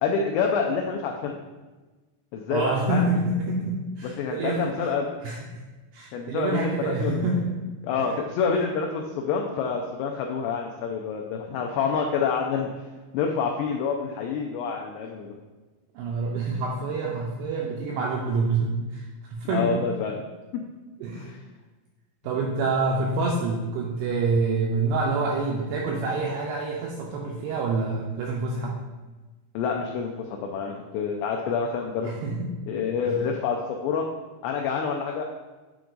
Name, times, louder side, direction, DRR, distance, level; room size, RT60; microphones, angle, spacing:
voice 1, 0.0-1.3 2.3-3.1 4.0-5.1 6.1-7.4 7.8-12.8 13.1-15.3 19.5-20.2 21.2-21.4 29.6-32.1 32.7-34.1 34.4-35.2, left 6 dB, 90° left, 1 dB, 2.4 m, -27 dB
voice 2, 2.5-4.6 5.2-5.6 5.9-7.5 8.0-8.1 16.0-19.8 21.0-21.3 22.2-28.8 32.0-32.5 33.1-33.3, right 3 dB, 85° right, -2 dB, 2.3 m, -27 dB
8.1 x 4.6 x 3.9 m, 1.2 s
omnidirectional pair, 5.5 m